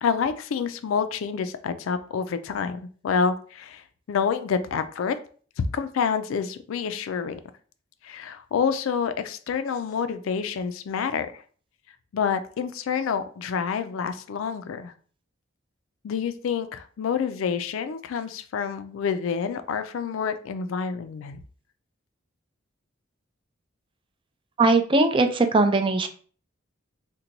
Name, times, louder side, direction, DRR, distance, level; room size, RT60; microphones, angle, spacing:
voice 1, 0.0-3.8 4.1-5.2 5.7-7.4 8.0-11.4 12.1-14.9 16.0-21.4, left 6 dB, 80° left, 10 dB, 0.3 m, -28 dB
voice 2, 24.6-26.1, right 3 dB, 25° right, 7 dB, 0.3 m, -20 dB
2.8 x 2.2 x 3.8 m, 0.43 s
head